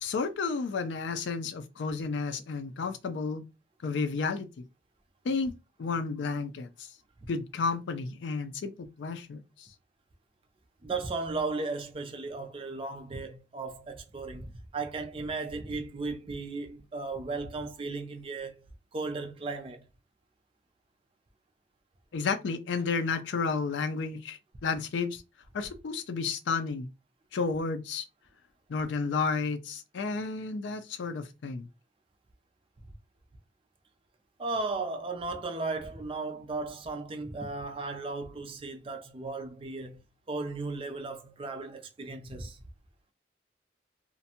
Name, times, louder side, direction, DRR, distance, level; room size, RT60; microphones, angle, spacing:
voice 1, 0.0-3.4 3.8-4.6 5.2-6.9 7.3-9.7 22.1-25.2 25.5-26.9 27.3-28.0 28.7-31.6, left 4 dB, 75° left, 0.4 m, -32 dB
voice 2, 10.8-18.6 18.9-19.8 34.4-40.0 40.3-42.6, right 3 dB, 30° right, 0.3 m, -35 dB
2.5 x 2.1 x 2.7 m
head